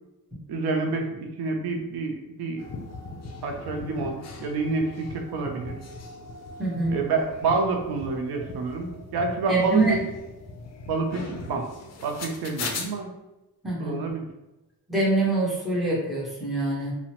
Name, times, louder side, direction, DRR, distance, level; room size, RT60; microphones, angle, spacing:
voice 1, 0.5-2.6 3.4-5.8 6.9-10.0 10.9-11.7 12.0-13.1 13.8-14.3, right 3 dB, 90° right, 2 dB, 0.6 m, -28 dB
sound 1, 2.6-12.9, left 3 dB, 45° left, 0.5 m, -39 dB
voice 2, 6.6-7.0 9.5-10.0 13.6-14.0 14.9-16.9, right 2 dB, ahead, -6 dB, 0.9 m, -24 dB
2.8 x 2.1 x 2.8 m, 1.0 s
cardioid pair, 125°, 37 cm